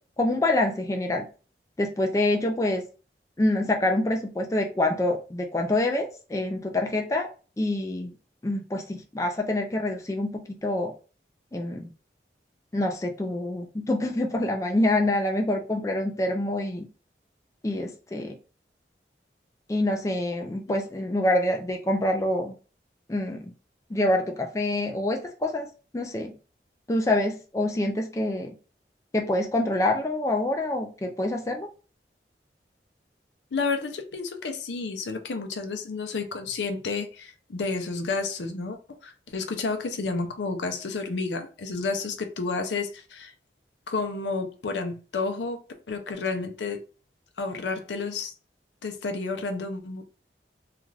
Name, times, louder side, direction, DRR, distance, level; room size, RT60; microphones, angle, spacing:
voice 1, 0.2-1.3 1.8-2.8 3.4-7.3 7.6-8.1 8.4-10.9 11.5-11.9 12.7-16.9 17.6-18.4 19.7-22.5 23.1-23.5 23.9-25.7 25.9-26.3 26.9-28.5 29.1-31.7, left 1 dB, 20° left, 0.3 m, -26 dB
voice 2, 33.5-43.3 43.9-46.8 47.4-48.3 48.8-50.0, left 4 dB, 85° left, 0.5 m, -31 dB
2.4 x 2.4 x 3.1 m
head